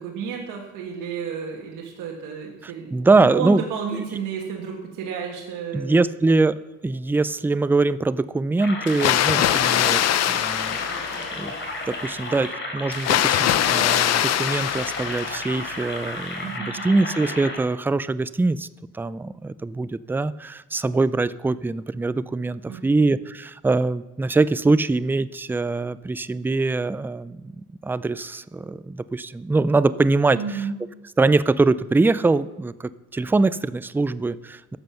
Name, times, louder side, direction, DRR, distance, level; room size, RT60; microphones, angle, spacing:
voice 1, 0.0-6.1 16.4-16.9 22.7-23.0 30.3-30.8, right 6 dB, 85° right, -1 dB, 1.5 m, -32 dB
voice 2, 2.6-3.6 5.7-6.6 6.8-10.8 11.3-11.5 11.9-18.7 18.9-30.6 31.2-34.8, right 3 dB, 5° right, 16 dB, 0.3 m, -23 dB
sound 1, 8.6-17.6, left 2 dB, 40° left, 3.8 m, -33 dB
Water, 8.9-11.7 12.9-15.7, left 12 dB, 60° left, 0.5 m, -22 dB
13.0 x 7.6 x 5.7 m, 1.1 s
cardioid pair, 90°, 30 cm